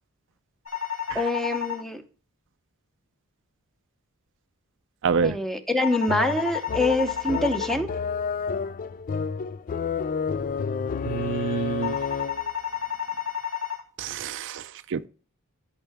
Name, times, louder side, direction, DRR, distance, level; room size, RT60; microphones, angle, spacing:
sound 1, 0.7-1.8 5.8-7.8 11.8-13.8, left 9 dB, 80° left, 2.0 m, -31 dB
voice 1, 1.1-2.0 5.2-7.9, left 1 dB, ahead, 0.8 m, -25 dB
voice 2, 5.0-5.4 11.1-12.0 14.0-15.1, right 5 dB, 60° right, 0.4 m, -27 dB
sound 2, 6.1-12.5, left 5 dB, 40° left, 0.4 m, -30 dB
12.5 x 5.6 x 3.5 m
head